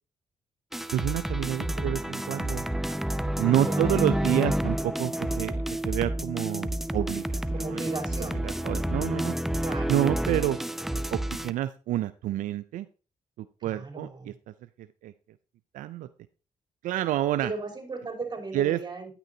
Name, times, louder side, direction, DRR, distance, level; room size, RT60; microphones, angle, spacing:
sound 1, 0.7-11.5, right 1 dB, ahead, 0.7 m, -29 dB
voice 1, 0.9-2.7 3.4-7.8 8.4-9.4 9.9-10.6 11.1-12.9 13.4-15.1 15.7-16.1 16.8-17.5 18.5-18.8, right 13 dB, 85° right, 13 dB, 0.4 m, -29 dB
voice 2, 1.6-2.0 3.6-4.1 7.5-8.4 9.6-9.9 13.6-14.3 17.4-19.1, right 3 dB, 35° right, 1 dB, 4.6 m, -37 dB
9.8 x 9.3 x 2.7 m, 0.36 s
cardioid pair, 65°, 13 cm